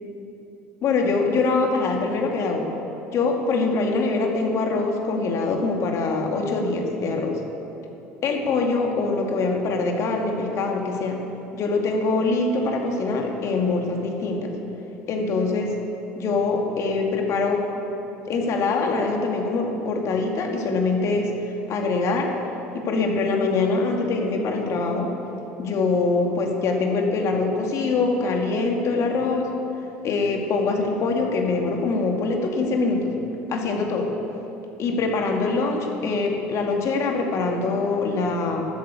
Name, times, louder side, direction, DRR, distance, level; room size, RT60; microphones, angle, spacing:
voice 1, 0.8-2.6 3.1-7.4 8.2-11.2 11.5-14.5 15.1-15.7 16.2-17.6 18.3-21.3 21.7-22.3 22.7-25.1 25.6-29.5 30.0-33.1 33.5-34.1 34.8-38.7, left 3 dB, 55° left, 2 dB, 2.4 m, -23 dB
13.0 x 8.9 x 8.5 m, 3.0 s
hypercardioid pair, 80°, 6 cm